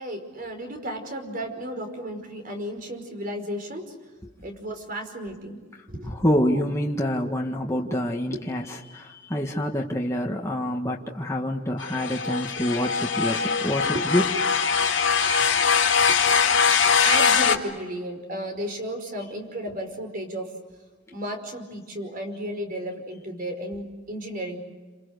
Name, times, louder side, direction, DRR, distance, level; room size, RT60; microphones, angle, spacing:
voice 1, 0.0-3.9 4.4-5.6 5.9-6.3 8.3-8.4 13.8-14.2 14.8-15.6 16.0-16.3 16.8-20.5 21.1-24.7, right 1 dB, 45° right, 5 dB, 5.2 m, -34 dB
voice 2, 6.1-8.6 8.9-14.2, left 1 dB, 15° left, 0 dB, 1.7 m, -26 dB
sound 1, 11.8-17.6, left 6 dB, 85° left, 2.2 m, -22 dB
29.5 x 27.5 x 6.7 m, 1.3 s
head